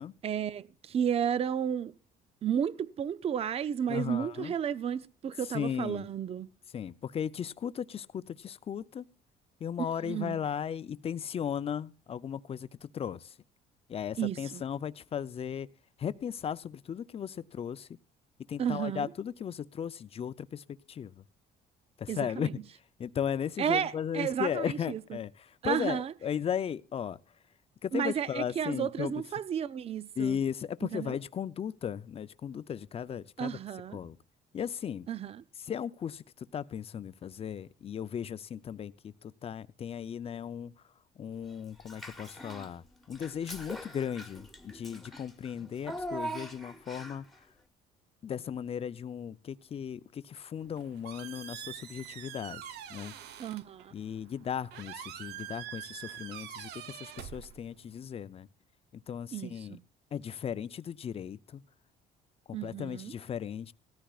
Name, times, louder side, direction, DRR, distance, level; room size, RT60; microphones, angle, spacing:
voice 1, 0.2-1.9 2.4-6.5 10.0-10.4 14.2-14.6 18.6-19.1 22.1-22.5 23.6-25.2 25.6-26.1 27.9-30.4 30.9-31.2 33.4-34.0 35.1-35.4 53.4-53.9 59.3-59.8 62.5-63.1, right 8 dB, 35° right, 0.5 m, -32 dB
voice 2, 3.9-4.5 5.5-6.1 6.7-9.1 9.6-13.3 13.9-15.7 16.0-17.9 18.5-21.1 22.0-22.5 23.0-27.2 27.8-29.1 30.2-33.6 33.9-34.2 34.5-35.1 35.6-36.2 36.5-40.7 41.2-47.2 48.2-52.6 52.9-53.1 53.9-58.5 58.9-59.8 60.1-61.6 62.5-63.7, left 8 dB, 35° left, 0.5 m, -36 dB
Child speech kid speaking / Bathtub (filling or washing), 41.8-42.7 43.1-47.3, right 1 dB, ahead, 1.3 m, -42 dB
Squeak, 50.5-58.0, right 11 dB, 75° right, 0.8 m, -45 dB
17.0 x 14.0 x 2.4 m
cardioid pair, 110°, 17 cm